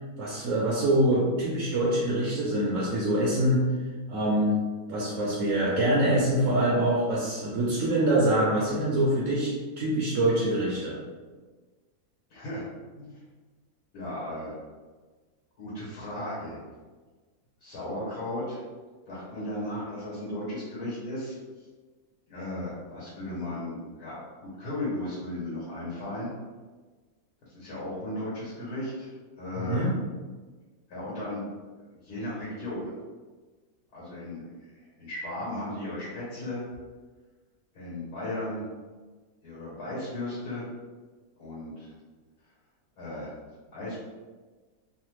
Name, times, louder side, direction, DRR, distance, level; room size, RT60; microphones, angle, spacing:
voice 1, 0.2-3.7 4.1-4.6 4.9-11.0 29.6-29.9, right 1 dB, 70° right, -5 dB, 0.9 m, -25 dB
voice 2, 12.3-12.6 13.0-13.2 13.9-14.6 15.6-16.6 17.6-18.6 19.1-21.4 22.3-26.3 27.5-29.8 30.9-31.5 31.9-32.9 33.9-36.6 37.7-38.6 39.4-40.6 41.4-41.9 43.0-43.3 43.7-44.0, left 1 dB, 90° left, -8 dB, 1.5 m, -35 dB
3.2 x 2.1 x 3.0 m, 1.4 s
omnidirectional pair, 1.6 m